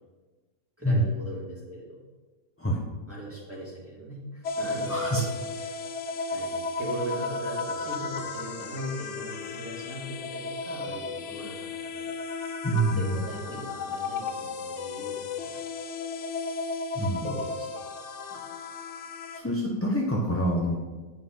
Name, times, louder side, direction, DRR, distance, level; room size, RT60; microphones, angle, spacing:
voice 1, 0.8-2.0 3.1-5.3 5.5-5.8 6.3-12.1 12.7-15.6 17.2-17.8 18.2-18.6, equal, 5° right, -6 dB, 2.8 m, -39 dB
sound 1, 4.4-19.4, left 4 dB, 60° left, 0.8 m, -34 dB
voice 2, 4.9-5.2 12.6-13.1 16.9-17.3 19.3-20.7, right 1 dB, 10° left, -4 dB, 0.7 m, -26 dB
8.7 x 5.7 x 5.5 m, 1.3 s
omnidirectional pair, 1.9 m